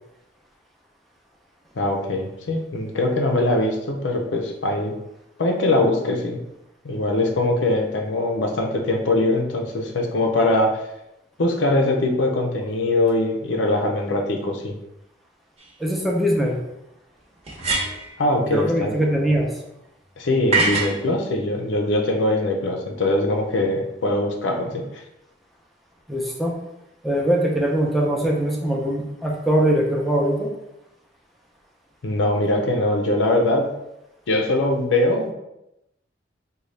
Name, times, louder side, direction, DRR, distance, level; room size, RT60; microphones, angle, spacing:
voice 1, 1.8-4.9 5.4-6.4 6.8-10.8 11.4-14.7 18.2-18.9 20.2-24.8 32.0-33.7 34.3-35.3, left 2 dB, 85° left, 2 dB, 0.5 m, -22 dB
sound 1, 15.6-15.7 17.4-18.1 20.5-21.0, right 3 dB, 35° right, 0.8 m, -22 dB
voice 2, 15.8-16.6 18.5-19.5 26.1-26.5 27.0-30.5, right 1 dB, ahead, -2 dB, 0.5 m, -21 dB
3.9 x 2.3 x 3.2 m, 0.88 s
head